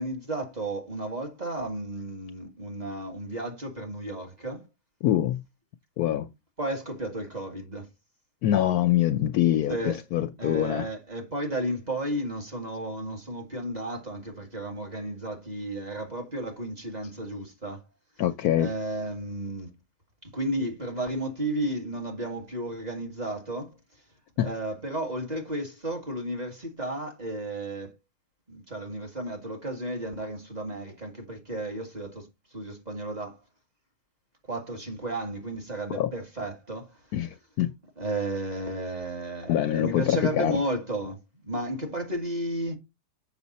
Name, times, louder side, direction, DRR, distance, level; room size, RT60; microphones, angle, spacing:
voice 1, 0.0-4.7 6.6-7.9 9.7-10.0 10.4-17.8 18.6-19.8 20.2-23.8 24.4-28.0 28.5-33.4 34.5-37.0 38.0-42.8, right 1 dB, 25° right, 1.8 m, -33 dB
voice 2, 5.0-5.4 6.0-6.3 8.4-10.9 18.2-18.7 24.4-24.5 35.9-36.1 37.1-37.7 39.5-40.6, left 12 dB, 70° left, 1.0 m, -24 dB
7.0 x 5.8 x 4.1 m
omnidirectional pair, 1.9 m